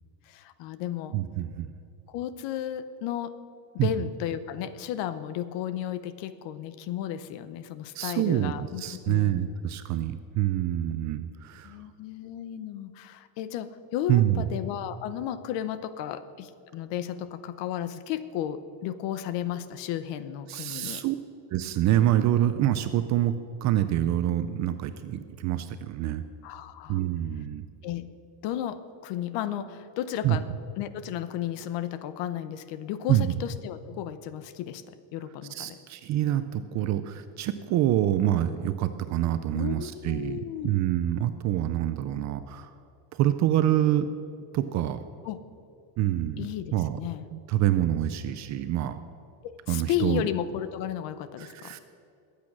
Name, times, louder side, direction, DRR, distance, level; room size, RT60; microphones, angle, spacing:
voice 1, 0.3-1.2 2.1-3.4 3.7-9.5 11.6-21.0 26.4-27.0 27.8-28.1 28.4-30.5 30.8-35.8 39.5-40.7 45.2-45.4 46.4-47.3 49.4-51.8, left 10 dB, 60° left, 13 dB, 0.9 m, -34 dB
voice 2, 1.1-1.7 3.8-3.9 8.0-8.5 8.8-11.7 14.1-14.4 20.5-21.2 21.5-23.3 23.6-26.2 26.9-27.7 30.2-30.4 33.1-33.3 35.5-42.7 43.1-44.1 44.5-45.0 46.0-47.0 47.3-49.0 49.7-50.2 51.4-51.8, right 12 dB, 40° right, 11 dB, 0.4 m, -26 dB
21.5 x 8.6 x 6.1 m, 2.5 s
cardioid pair, 170°, 50 cm